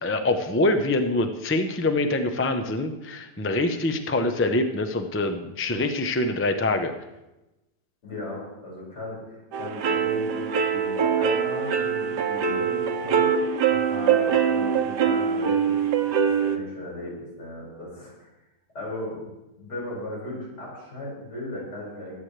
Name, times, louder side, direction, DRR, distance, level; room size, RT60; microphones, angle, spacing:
voice 1, 0.0-6.9, left 2 dB, 15° left, 6 dB, 0.4 m, -25 dB
voice 2, 8.0-18.3 18.7-19.3 19.6-22.2, left 1 dB, 80° left, -5 dB, 6.3 m, -36 dB
sound 1, 9.5-16.6, right 7 dB, 80° right, 1.5 m, -23 dB
22.0 x 9.3 x 3.3 m, 0.99 s
omnidirectional pair, 1.8 m